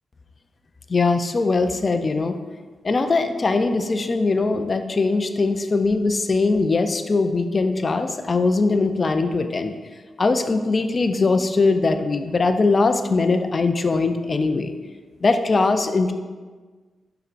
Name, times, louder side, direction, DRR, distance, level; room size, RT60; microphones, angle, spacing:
voice 1, 0.9-2.4 2.8-9.7 10.2-14.7 15.2-16.1, left 3 dB, 35° left, 7 dB, 0.4 m, -21 dB
6.5 x 5.8 x 2.5 m, 1.4 s
wide cardioid pair, 135°, 0 cm